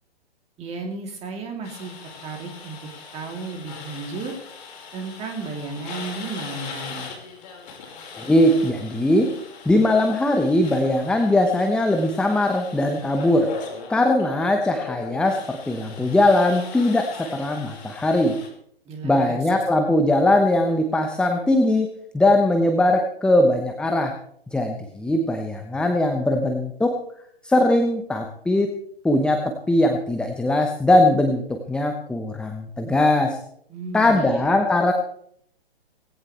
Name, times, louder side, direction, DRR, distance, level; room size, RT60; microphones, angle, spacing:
voice 1, 0.6-2.0 2.2-2.8 3.1-4.3 4.9-7.1 18.8-19.4 33.7-34.5, right 3 dB, 20° right, 2 dB, 3.3 m, -33 dB
sound 1, 1.6-18.5, left 5 dB, 45° left, 5.2 m, -39 dB
voice 2, 8.2-9.3 9.6-13.5 13.9-18.4 19.0-21.9 22.1-24.1 24.5-27.0 27.4-28.7 29.0-33.4 33.9-34.9, left 1 dB, 5° left, 4 dB, 1.0 m, -20 dB
19.0 x 16.5 x 3.4 m, 0.66 s
figure-of-eight pair, 120°, 31 cm